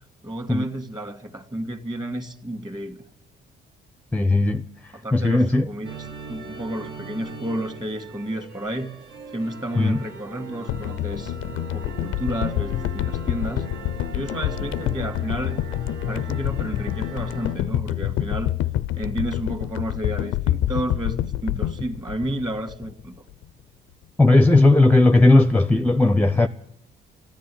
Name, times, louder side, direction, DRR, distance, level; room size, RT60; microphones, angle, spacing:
voice 1, 0.2-3.0 4.9-9.0 9.3-13.7 14.1-15.6 16.1-18.5 18.9-23.1, right 1 dB, 20° right, 1.9 m, -31 dB
voice 2, 4.1-5.7 9.8-10.0 24.2-26.5, left 2 dB, 5° left, 0.6 m, -17 dB
sound 1, 5.8-17.6, right 4 dB, 70° right, 1.8 m, -40 dB
sound 2, 10.7-23.0 23.3-23.4, left 13 dB, 90° left, 0.5 m, -27 dB
14.5 x 10.0 x 9.9 m
cardioid pair, 90°, 20 cm